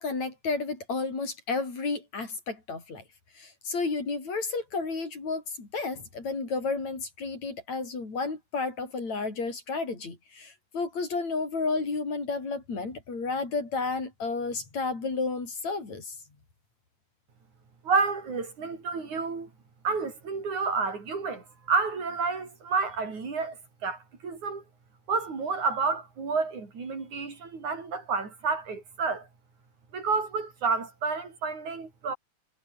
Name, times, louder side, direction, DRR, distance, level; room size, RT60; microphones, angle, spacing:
voice 1, 0.0-3.0 3.4-16.1, left 4 dB, 70° left, 7.3 m, -32 dB
voice 2, 17.8-19.5 19.8-24.6 25.1-29.3 29.9-32.1, right 4 dB, 80° right, 6.7 m, -30 dB
omnidirectional pair, 3.3 m